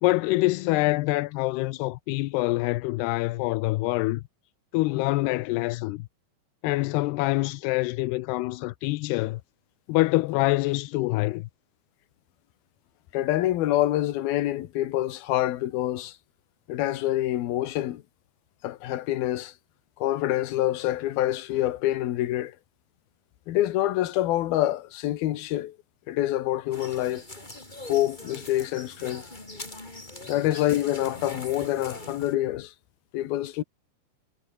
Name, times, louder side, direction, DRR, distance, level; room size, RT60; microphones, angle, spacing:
voice 1, 0.0-4.2 4.7-6.1 6.6-9.4 9.9-11.5, left 20 dB, 85° left, 2.4 m, -25 dB
voice 2, 13.1-16.1 16.7-18.0 18.6-19.5 20.0-22.6 23.5-25.8 26.1-27.2 27.9-29.3 30.3-32.7 33.1-33.6, left 14 dB, 65° left, 2.9 m, -26 dB
sound 1, 26.7-32.3, left 2 dB, 10° left, 3.7 m, -42 dB
omnidirectional pair, 5.3 m